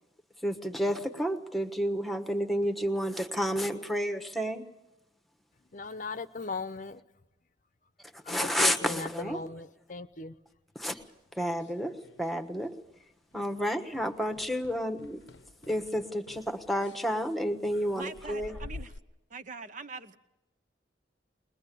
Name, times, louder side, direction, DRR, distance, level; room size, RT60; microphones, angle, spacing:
voice 1, 0.4-4.6 8.1-9.4 10.7-11.0 11.3-12.7 13.3-15.2 15.7-18.5, equal, ahead, 1.3 m, -30 dB
voice 2, 5.7-7.0 8.2-10.4, left 4 dB, 45° left, 0.8 m, -38 dB
sound 1, 10.9-12.4 12.6-13.0 13.3-13.5 13.9-19.0, left 2 dB, 70° left, 0.8 m, -49 dB
voice 3, 17.9-18.9 19.3-20.2, right 4 dB, 45° right, 0.9 m, -42 dB
21.5 x 20.5 x 8.5 m
head